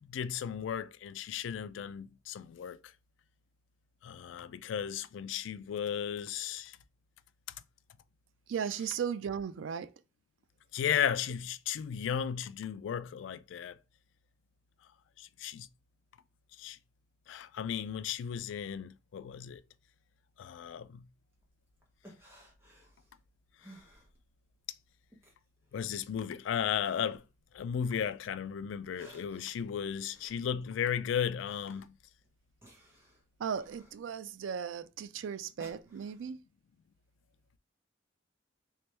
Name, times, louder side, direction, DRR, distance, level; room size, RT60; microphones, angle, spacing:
voice 1, 0.0-2.8 4.0-6.8 10.7-13.8 15.2-15.7 16.6-16.8 17.3-19.6 20.4-21.0 25.7-27.2 27.5-31.9, left 8 dB, 80° left, 0.3 m, -35 dB
voice 2, 8.5-9.9 33.4-36.4, right 7 dB, 85° right, 0.3 m, -36 dB
sound 1, 21.3-24.6 24.9-28.2 28.6-36.3, right 1 dB, 15° right, 0.9 m, -59 dB
3.3 x 3.2 x 3.1 m
head